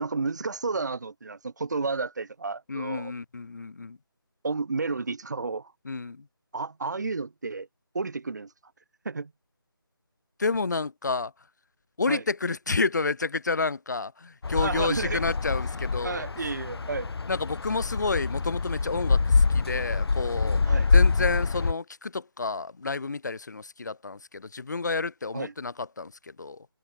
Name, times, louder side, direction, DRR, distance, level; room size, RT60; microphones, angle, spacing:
voice 1, 0.0-3.1 4.4-5.7 6.5-7.7 7.9-8.5 9.0-9.3 12.1-12.2 14.6-15.2 16.0-17.1 20.6-20.9 25.3-25.5, right 4 dB, 45° right, 1.5 m, -31 dB
voice 2, 2.7-4.0 5.8-6.2 10.4-11.3 12.0-16.2 17.3-20.6 20.9-26.7, left 4 dB, 45° left, 1.2 m, -30 dB
sound 1, 14.4-21.7, left 4 dB, 75° left, 0.4 m, -25 dB
figure-of-eight pair, 165°, 13 cm